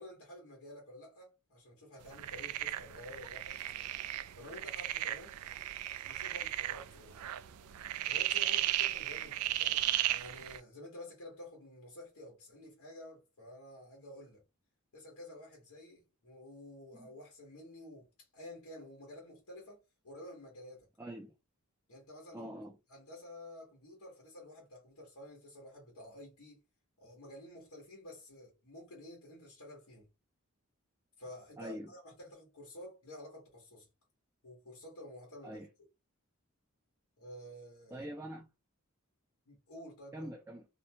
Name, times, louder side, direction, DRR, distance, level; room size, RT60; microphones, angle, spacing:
voice 1, 0.0-3.6 4.4-5.3 6.1-7.4 8.0-14.4 14.9-19.8 20.0-20.9 21.9-22.5 22.9-26.6 27.0-30.1 31.2-33.9 34.4-35.6 37.2-38.1 39.5-40.3, left 1 dB, 80° left, 1.1 m, -51 dB
sound 1, 2.1-10.6, right 14 dB, 85° right, 0.3 m, -35 dB
voice 2, 21.0-21.3 22.3-22.7 31.6-31.9 35.4-35.7 37.9-38.5 40.1-40.6, right 1 dB, 10° right, 0.4 m, -44 dB
2.7 x 2.2 x 2.7 m
head